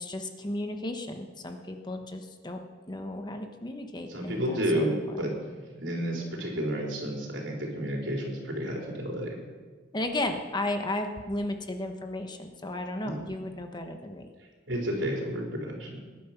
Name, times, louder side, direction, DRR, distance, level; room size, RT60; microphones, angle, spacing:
voice 1, 0.0-2.6 2.9-5.3 9.9-14.3, left 1 dB, 25° left, 5 dB, 1.2 m, -34 dB
voice 2, 4.1-9.4 13.0-13.2 14.7-16.0, equal, 80° right, -1 dB, 3.9 m, -31 dB
19.5 x 10.5 x 5.9 m, 1.4 s
head